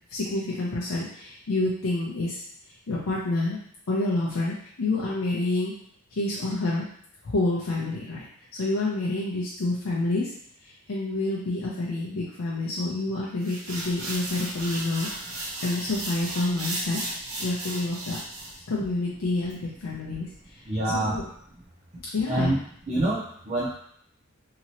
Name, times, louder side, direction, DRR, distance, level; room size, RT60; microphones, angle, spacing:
voice 1, 0.1-2.4 2.9-3.6 3.9-5.7 6.1-6.9 7.2-8.3 8.5-10.3 10.6-17.0 17.4-18.2 18.7-20.7 20.9-21.2 22.1-22.5, left 2 dB, 70° left, -5 dB, 0.5 m, -28 dB
sound 1, 13.4-18.6, right 1 dB, 75° right, 1.0 m, -35 dB
voice 2, 20.7-21.2 22.3-22.6 22.9-23.7, right 1 dB, 30° right, -7 dB, 0.5 m, -26 dB
2.9 x 2.9 x 2.8 m, 0.65 s
head